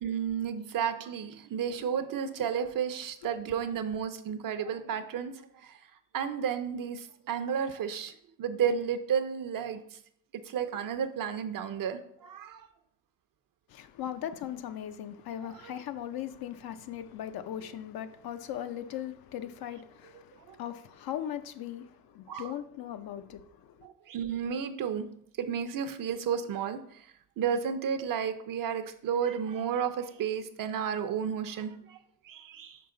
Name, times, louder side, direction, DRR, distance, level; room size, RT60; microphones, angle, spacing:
voice 1, 0.0-5.3 5.6-5.7 6.1-8.1 8.4-9.8 10.5-12.6 15.6-15.7 20.5-20.6 22.3-22.5 23.8-25.1 25.4-26.8 27.4-32.0 32.3-32.8, right 7 dB, 55° right, 0.7 m, -32 dB
voice 2, 13.7-23.7, left 10 dB, 65° left, 0.6 m, -39 dB
5.6 x 4.7 x 3.8 m
cardioid pair, 85°, 40 cm